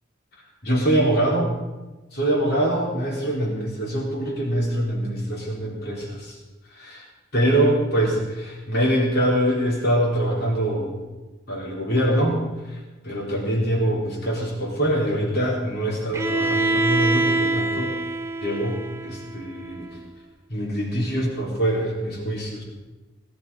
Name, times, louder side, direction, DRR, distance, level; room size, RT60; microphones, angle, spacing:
voice 1, 0.6-1.5 2.1-6.4 6.7-7.0 7.3-10.9 11.5-12.4 12.7-12.8 13.0-17.9 18.4-19.9 20.5-22.6, right 1 dB, 50° left, -2 dB, 3.7 m, -24 dB
Bowed string instrument, 16.1-20.0, right 2 dB, 15° right, 0.8 m, -25 dB
18.5 x 12.0 x 5.4 m, 1.2 s
head